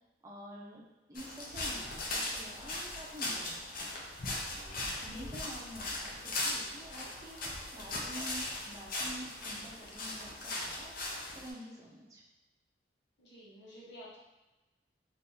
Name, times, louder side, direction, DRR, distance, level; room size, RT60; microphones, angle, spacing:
voice 1, 0.2-0.8 1.1-3.9 4.5-10.9 11.3-12.2, equal, 20° right, -3 dB, 0.5 m, -48 dB
sound 1, 1.2-11.5, left 2 dB, 50° left, 0.6 m, -39 dB
voice 2, 5.0-5.4 13.2-14.2, equal, 85° left, -7 dB, 1.1 m, -52 dB
3.4 x 2.5 x 2.7 m, 1.1 s
head